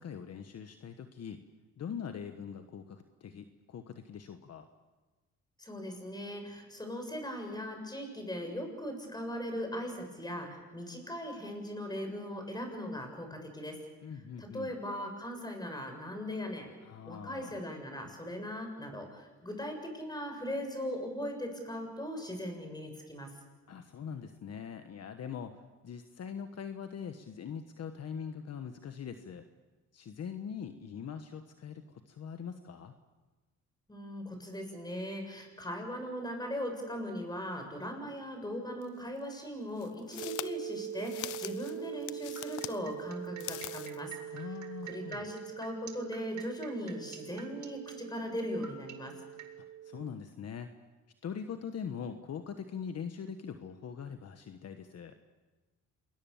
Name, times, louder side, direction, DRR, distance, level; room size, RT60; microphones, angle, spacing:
voice 1, 0.0-1.4 1.8-4.7 14.0-14.7 16.8-17.6 23.7-29.4 29.9-32.9 44.3-45.3 49.6-50.7 51.2-55.1, left 7 dB, 55° left, 7 dB, 1.4 m, -42 dB
voice 2, 5.6-13.8 14.4-16.7 17.1-23.3 33.9-44.4 44.8-49.1, equal, 15° left, 4 dB, 7.4 m, -39 dB
sound 1, 38.8-38.9 39.8-42.8 43.3-44.0, left 15 dB, 85° left, 0.8 m, -42 dB
sound 2, 40.2-50.1, right 11 dB, 90° right, 1.4 m, -43 dB
sound 3, 42.4-49.5, right 9 dB, 65° right, 2.6 m, -48 dB
27.5 x 21.5 x 7.3 m, 1.2 s
cardioid pair, 90°, 30 cm